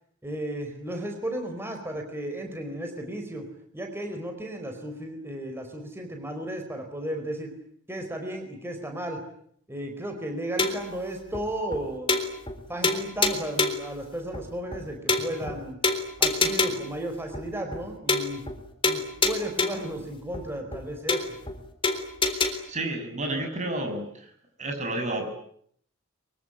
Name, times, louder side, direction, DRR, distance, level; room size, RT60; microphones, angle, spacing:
voice 1, 0.2-3.4 3.7-7.5 7.9-9.2 9.7-12.2 12.7-15.8 16.2-18.5 18.8-21.3, right 1 dB, 10° right, 4 dB, 4.5 m, -34 dB
sound 1, 10.6-10.9 11.3-11.4 11.7-11.8 12.1-12.6 12.8-13.9 14.3-14.4 14.7-14.8 15.1-15.6 15.8-16.9 17.3-17.4 17.7-17.8 18.1-18.6 18.8-19.9 20.3-20.4 20.7-20.8 21.1-21.6 21.8-22.5, left 3 dB, 25° left, 3.7 m, -26 dB
voice 2, 22.4-24.3 24.6-25.2, right 2 dB, 35° right, 4 dB, 7.5 m, -31 dB
24.5 x 24.0 x 9.9 m, 0.66 s
head